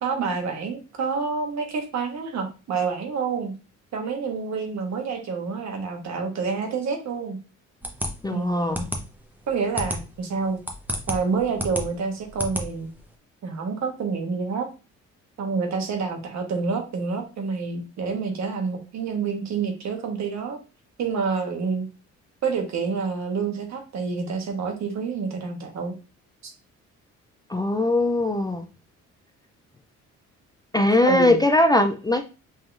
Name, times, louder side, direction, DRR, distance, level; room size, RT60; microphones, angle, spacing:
voice 1, 0.0-3.5 3.9-7.4 8.3-8.8 9.5-10.6 11.1-12.9 13.4-14.7 15.4-20.6 21.0-21.9 22.4-25.9 26.4-26.5 31.0-31.4, right 5 dB, 65° right, 3 dB, 1.3 m, -28 dB
sound 1, 7.8-13.1, equal, 5° right, 0.8 m, -32 dB
voice 2, 8.2-8.8 27.5-28.6 30.7-32.3, left 2 dB, 15° left, 6 dB, 0.4 m, -20 dB
5.5 x 2.9 x 2.5 m, 0.32 s
cardioid pair, 90°, 30 cm